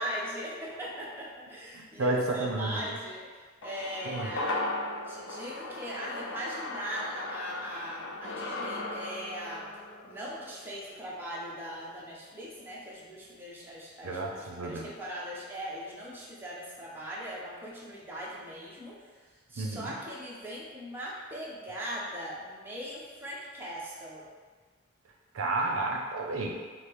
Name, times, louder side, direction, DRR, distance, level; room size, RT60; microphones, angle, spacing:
voice 1, 0.0-4.6 5.1-9.7 10.0-24.3, equal, 10° right, -6 dB, 0.8 m, -40 dB
voice 2, 1.7-2.9 4.0-4.3 14.0-14.9 19.6-19.9 25.3-26.5, right 2 dB, 80° right, 0 dB, 0.6 m, -31 dB
sound 1, 3.6-12.1 12.4-12.5, left 2 dB, 65° left, 0.5 m, -38 dB
5.1 x 2.0 x 4.6 m, 1.4 s
head